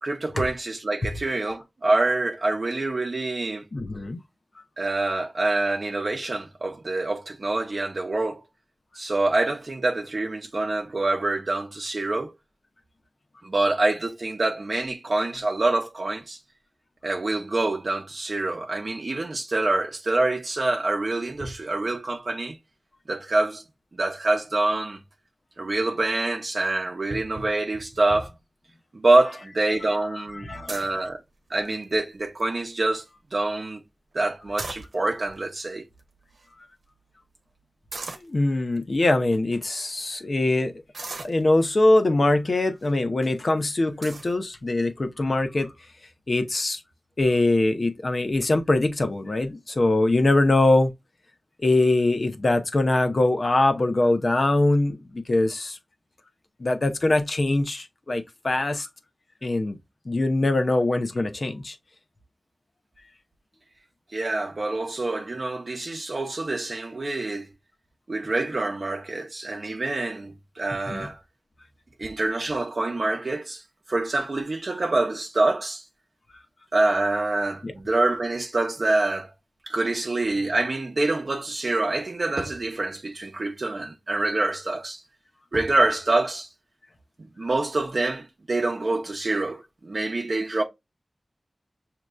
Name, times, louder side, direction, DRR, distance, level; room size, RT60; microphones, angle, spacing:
voice 1, 0.0-3.6 4.8-8.4 8.9-12.3 13.4-16.4 17.0-22.6 23.1-23.6 24.0-25.0 25.6-28.3 28.9-31.2 31.5-33.0 33.3-33.8 34.1-35.8 64.1-67.5 68.1-71.2 72.0-73.6 73.9-75.8 76.7-79.3 79.7-85.0 85.5-86.5 87.4-90.6, right 2 dB, 60° right, 0.7 m, -26 dB
voice 2, 3.7-4.2 30.3-30.8 38.2-40.7 41.2-45.7 46.3-46.8 47.2-50.9 51.6-55.8 56.6-58.9 59.4-59.8 60.0-61.8 70.9-71.0 77.6-77.7, left 2 dB, 55° left, 0.8 m, -22 dB
sound 1, 30.7-31.0 31.6-32.0 32.4-32.5 32.7-33.1 34.4-35.3 36.0-36.1 36.3-36.5 37.9-38.3 39.0-39.1 39.7-39.9 40.9-41.8 42.6-42.9 43.4-43.5 44.0-44.3, right 3 dB, 85° right, 0.9 m, -37 dB
6.3 x 2.9 x 2.3 m
wide cardioid pair, 75°, 0 cm